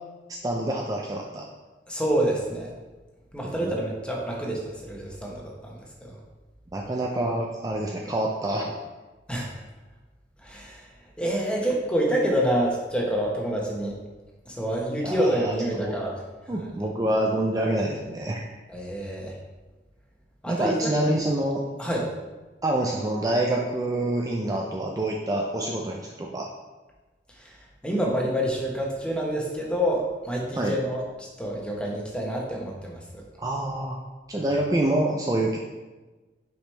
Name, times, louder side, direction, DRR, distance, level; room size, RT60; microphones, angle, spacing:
voice 1, 0.3-1.4 3.4-3.8 6.7-8.8 15.0-16.0 16.5-18.4 20.5-21.6 22.6-26.5 30.6-30.8 33.4-34.0 34.3-35.6, right 1 dB, 20° right, -1 dB, 0.4 m, -27 dB
voice 2, 1.9-2.7 3.3-6.1 9.3-9.6 10.4-10.8 11.2-13.9 14.5-16.2 16.5-16.6 18.7-19.3 20.4-20.9 21.8-22.1 27.4-27.5 27.8-33.0, equal, 5° left, -2 dB, 1.1 m, -27 dB
6.2 x 5.0 x 3.3 m, 1.2 s
head